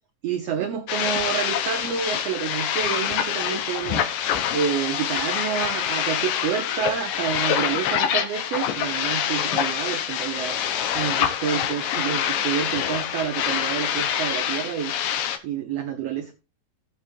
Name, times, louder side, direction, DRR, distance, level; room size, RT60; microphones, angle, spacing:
voice 1, 0.2-4.1 4.5-10.6 10.9-14.9 15.4-16.3, right 8 dB, 85° right, 7 dB, 1.4 m, -28 dB
sound 1, 0.9-15.4, left 9 dB, 80° left, 2.6 m, -26 dB
16.5 x 7.3 x 2.6 m, 0.31 s
omnidirectional pair, 4.0 m